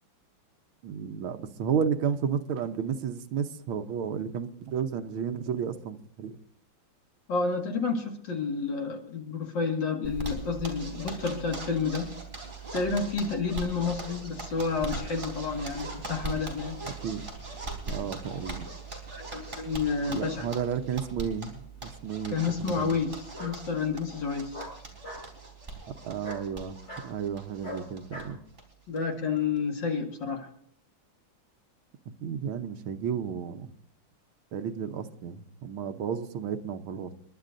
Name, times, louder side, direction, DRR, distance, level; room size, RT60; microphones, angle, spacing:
voice 1, 0.8-6.4 16.9-17.3 17.9-18.7 20.1-23.0 26.0-26.8 27.0-28.4 32.2-33.7 34.5-37.1, right 7 dB, 80° right, 9 dB, 1.7 m, -32 dB
voice 2, 7.3-12.1 12.7-16.8 19.1-20.5 22.3-24.6 28.9-30.5, left 5 dB, 60° left, 3 dB, 2.7 m, -30 dB
Zipper (clothing), 10.0-28.2 28.5-28.6 29.0-29.1 29.4-29.8, right 3 dB, 25° right, 4.1 m, -40 dB
Bark, 21.5-21.8 23.3-23.6 24.5-25.3 26.2-26.5 26.9-27.1 27.6-28.3, equal, 30° left, 6.0 m, -41 dB
29.5 x 12.0 x 2.6 m, 0.63 s
omnidirectional pair, 2.2 m